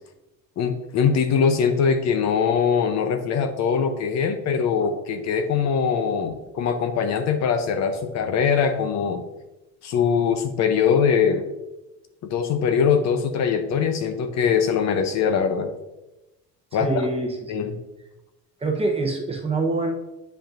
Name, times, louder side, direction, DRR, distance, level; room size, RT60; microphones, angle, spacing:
voice 1, 0.6-9.2 9.8-11.5 12.3-15.7 16.7-17.1 17.5-17.8, left 6 dB, 50° left, 8 dB, 0.7 m, -22 dB
voice 2, 16.8-17.4 18.6-20.0, right 3 dB, 15° right, 2 dB, 0.9 m, -24 dB
8.8 x 5.1 x 2.5 m, 0.97 s
cardioid pair, 125°, 35 cm